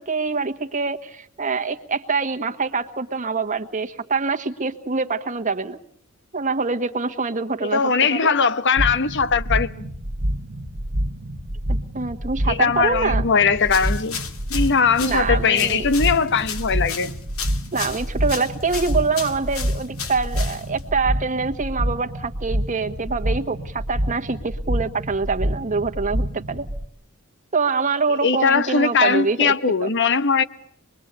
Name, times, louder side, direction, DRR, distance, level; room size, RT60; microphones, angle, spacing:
voice 1, 0.0-5.8 6.3-8.3 11.7-13.2 15.0-15.9 17.7-26.7 27.5-29.5 29.8-29.9, right 4 dB, 35° right, 1.4 m, -25 dB
voice 2, 7.6-9.9 12.5-14.2 14.5-17.1 28.2-30.4, left 5 dB, 55° left, 1.0 m, -20 dB
sound 1, 8.8-26.8, equal, 55° right, 1.4 m, -27 dB
sound 2, 13.6-20.9, left 7 dB, 80° left, 2.2 m, -35 dB
26.0 x 22.0 x 8.8 m
head